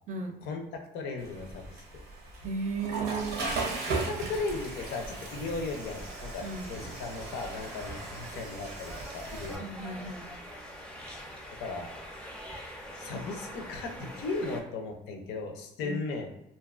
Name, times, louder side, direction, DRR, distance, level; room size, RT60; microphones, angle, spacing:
voice 1, 0.9-1.8 3.9-9.9 11.6-11.9 13.0-16.3, left 3 dB, 90° left, 3 dB, 0.5 m, -36 dB
Water / Toilet flush, 1.2-9.6, right 3 dB, 90° right, 0.7 m, -37 dB
voice 2, 2.4-3.4 6.4-6.7 9.6-10.3 15.8-16.0, right 4 dB, 45° right, 4 dB, 0.5 m, -35 dB
sound 1, 4.2-14.6, equal, 5° left, 0.5 m, -44 dB
2.6 x 2.2 x 2.3 m, 0.87 s
cardioid pair, 110°, 17 cm